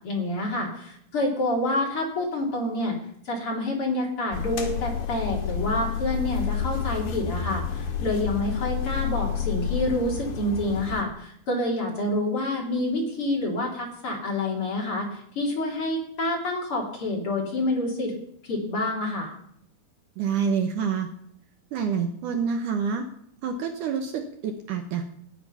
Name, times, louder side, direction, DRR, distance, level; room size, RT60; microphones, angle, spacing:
voice 1, 0.0-3.0 3.2-18.1 18.4-19.3, left 1 dB, 40° left, -1 dB, 3.3 m, -28 dB
sound 1, 4.3-11.0, left 8 dB, 85° left, 3.5 m, -30 dB
voice 2, 20.2-21.1 21.7-23.0 23.4-25.0, right 6 dB, 70° right, 5 dB, 2.2 m, -27 dB
15.0 x 9.7 x 5.6 m, 0.70 s
omnidirectional pair, 4.3 m